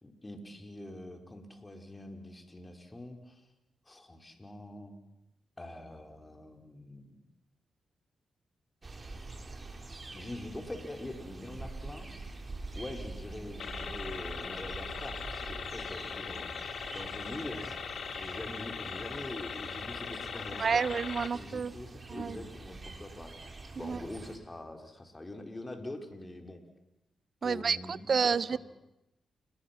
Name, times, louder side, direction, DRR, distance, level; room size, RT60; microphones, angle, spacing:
voice 1, 0.0-3.4 3.9-5.0 5.6-7.2 10.1-12.1 12.7-16.5 16.9-17.7 18.1-20.9 21.3-23.3 23.7-26.6 27.4-28.6, left 1 dB, 25° left, 4 dB, 4.7 m, -44 dB
sound 1, 8.8-24.4, right 3 dB, 35° right, 3.9 m, -46 dB
sound 2, 13.6-21.3, left 6 dB, 65° left, 1.9 m, -40 dB
voice 2, 20.6-21.7 22.1-22.4 23.8-24.0 27.4-28.6, right 5 dB, 55° right, 20 dB, 0.8 m, -29 dB
29.5 x 20.5 x 6.0 m, 0.88 s
supercardioid pair, 45°, 0 cm